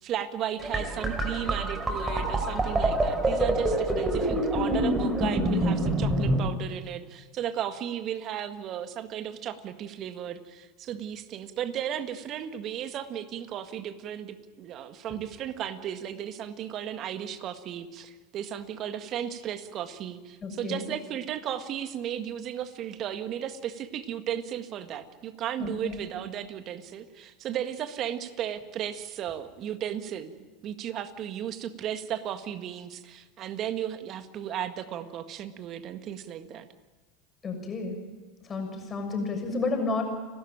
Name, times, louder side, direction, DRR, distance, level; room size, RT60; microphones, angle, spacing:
voice 1, 0.0-30.3 30.6-36.7, right 10 dB, 45° right, 10 dB, 1.8 m, -35 dB
sound 1, 0.6-6.5, right 1 dB, 15° right, 4.8 m, -26 dB
voice 2, 20.4-20.9 25.6-26.0 37.4-38.0 38.4-40.0, left 3 dB, 30° left, 3 dB, 6.5 m, -31 dB
30.0 x 12.5 x 9.1 m, 1.4 s
hypercardioid pair, 85°, 0 cm